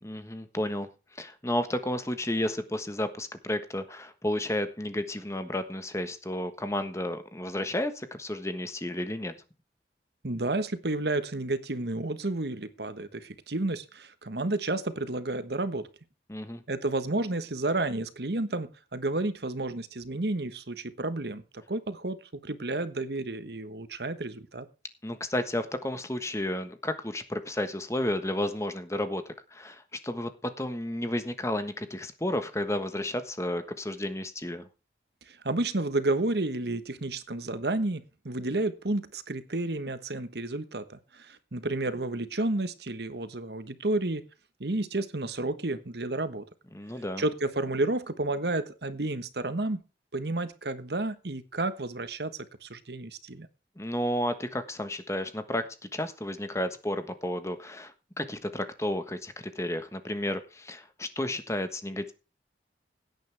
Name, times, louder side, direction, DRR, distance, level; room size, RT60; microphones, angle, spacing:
voice 1, 0.0-9.3 16.3-16.6 25.0-29.2 29.5-30.3 30.6-34.7 46.7-47.2 53.8-55.6 55.9-62.1, left 1 dB, 15° left, 1.3 m, -32 dB
voice 2, 10.2-15.9 16.7-22.2 22.4-24.7 35.3-44.2 44.6-46.4 47.2-49.8 50.1-53.5, right 2 dB, 65° right, 1.3 m, -31 dB
17.0 x 9.4 x 3.5 m
head